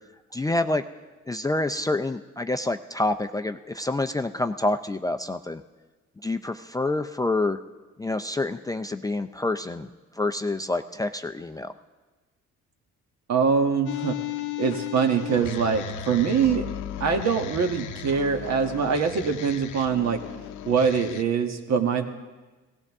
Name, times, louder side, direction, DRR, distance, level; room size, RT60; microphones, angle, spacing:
voice 1, 0.3-0.8 1.3-5.6 6.2-7.6 8.0-9.9 10.2-11.7, left 2 dB, 10° left, 6 dB, 0.4 m, -27 dB
voice 2, 13.3-14.2 14.6-16.7 17.0-20.2 20.6-22.1, right 6 dB, 60° right, 5 dB, 1.5 m, -23 dB
sound 1, 13.9-21.2, left 9 dB, 85° left, 0.8 m, -35 dB
17.0 x 16.0 x 3.6 m, 1.2 s
cardioid pair, 90°, 30 cm